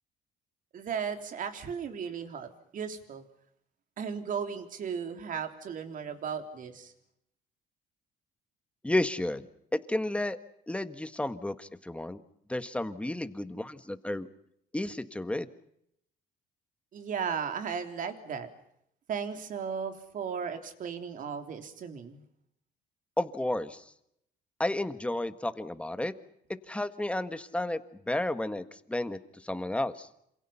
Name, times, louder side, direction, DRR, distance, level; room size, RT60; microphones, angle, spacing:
voice 1, 0.7-3.2 4.0-6.9 16.9-18.5 19.1-22.2, right 6 dB, 50° right, 7 dB, 3.5 m, -36 dB
voice 2, 8.8-9.5 9.7-10.4 10.7-12.2 12.5-14.3 14.7-15.5 23.2-23.8 24.6-26.1 26.7-27.8 28.1-30.1, left 1 dB, 5° left, 11 dB, 1.6 m, -32 dB
28.0 x 27.5 x 5.8 m, 0.75 s
cardioid pair, 110°, 17 cm